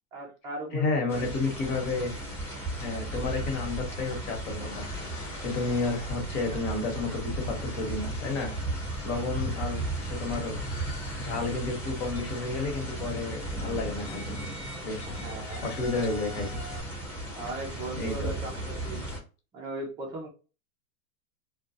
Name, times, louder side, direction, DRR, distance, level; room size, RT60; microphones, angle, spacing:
voice 1, 0.1-1.3 1.6-1.8 15.1-15.6 17.4-19.0 19.5-20.3, right 1 dB, 10° right, 0.3 m, -38 dB
voice 2, 0.7-2.2 2.7-4.8 5.4-8.5 9.0-10.6 11.2-14.4 14.8-15.1 15.6-16.6 18.0-18.3, left 3 dB, 55° left, 1.2 m, -31 dB
sound 1, 1.1-19.2, right 1 dB, 5° left, 0.8 m, -35 dB
sound 2, 2.3-16.8, left 2 dB, 40° left, 0.8 m, -48 dB
2.2 x 2.2 x 2.6 m
hypercardioid pair, 135°, 43 cm